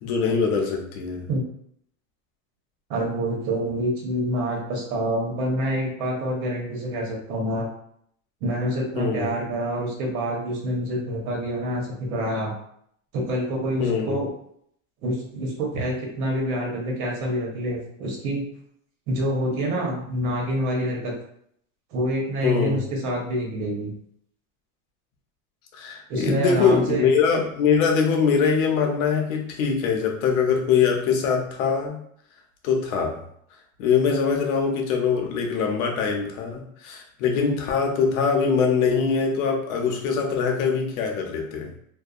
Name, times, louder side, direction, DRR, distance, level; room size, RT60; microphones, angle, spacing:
voice 1, 0.0-1.2 9.0-9.3 13.8-14.2 22.4-22.8 25.7-32.0 32.6-33.2 33.8-41.7, left 6 dB, 85° left, 1 dB, 0.8 m, -23 dB
voice 2, 2.9-7.7 8.4-12.5 13.1-14.3 15.0-18.4 19.1-21.1 21.9-23.9 26.1-27.1, equal, 85° right, -1 dB, 1.1 m, -27 dB
2.7 x 2.2 x 2.4 m, 0.69 s
cardioid pair, 160°, 41 cm